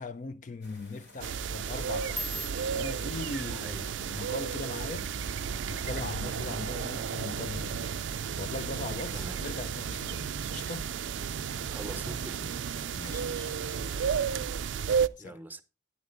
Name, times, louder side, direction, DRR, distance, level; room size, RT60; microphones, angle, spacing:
voice 1, 0.0-5.1 5.6-8.0 8.3-10.9 13.0-13.5 15.2-15.4, left 3 dB, 45° left, 0.5 m, -40 dB
sound 1, 0.6-14.5, left 1 dB, 85° left, 6.1 m, -55 dB
sound 2, 1.2-15.1, right 7 dB, 80° right, 0.4 m, -33 dB
sound 3, 1.9-6.1 6.4-6.8 7.2-7.6 8.0-8.2 8.8-9.2 9.6-10.4 10.8-11.2 12.0-12.1, left 1 dB, 10° left, 1.2 m, -44 dB
voice 2, 3.5-4.0 6.4-6.7 9.1-9.4 11.6-12.6 15.2-15.6, right 1 dB, 10° right, 0.7 m, -44 dB
12.5 x 9.7 x 2.5 m
head